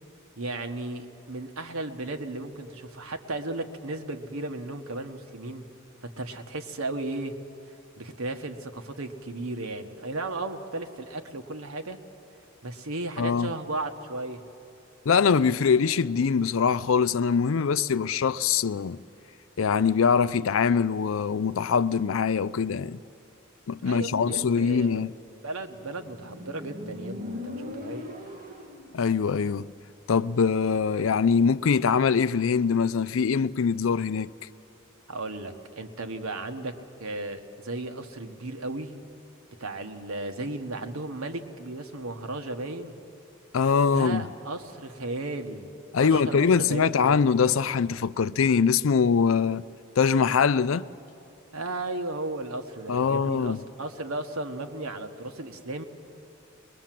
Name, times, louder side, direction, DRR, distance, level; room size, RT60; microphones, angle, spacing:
voice 1, 0.4-5.7 6.0-7.4 8.0-12.0 12.6-14.4 23.8-25.0 25.4-28.1 35.1-39.0 39.6-42.9 43.9-45.7 46.0-47.2 51.5-55.8, right 2 dB, 90° right, 1.3 m, -35 dB
voice 2, 13.2-13.5 15.1-19.0 19.6-23.0 23.7-25.1 28.9-29.7 30.1-34.3 43.5-44.2 45.9-49.6 50.0-50.9 52.9-53.6, left 6 dB, 70° left, 0.4 m, -23 dB
Motorcycle, 25.5-29.0, left 2 dB, 40° right, 2.6 m, -39 dB
22.5 x 21.0 x 7.6 m
head